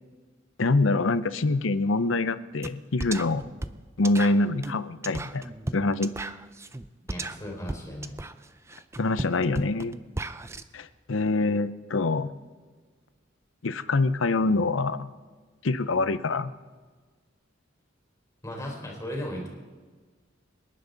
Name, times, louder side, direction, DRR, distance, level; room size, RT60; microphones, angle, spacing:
voice 1, 0.6-3.4 4.0-6.1 9.0-9.9 10.7-12.3 13.6-15.1 15.6-16.5, left 3 dB, 90° left, 13 dB, 0.7 m, -25 dB
sound 1, 2.6-2.7 3.0-10.6, right 2 dB, 15° right, 0.5 m, -36 dB
voice 2, 7.1-8.2 18.4-19.5, equal, 15° left, -1 dB, 3.9 m, -36 dB
26.0 x 11.0 x 4.0 m, 1.4 s
head